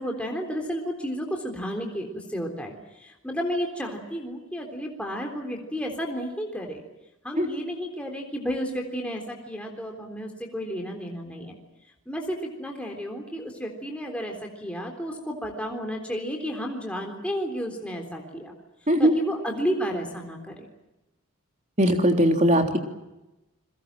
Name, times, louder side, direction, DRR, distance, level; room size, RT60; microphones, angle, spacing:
voice 1, 0.0-2.7 3.0-6.8 7.2-11.6 12.1-18.5 19.0-20.7, equal, 5° left, 1 dB, 3.7 m, -32 dB
voice 2, 21.8-22.8, equal, 30° right, 4 dB, 3.4 m, -19 dB
30.0 x 22.0 x 7.6 m, 0.99 s
head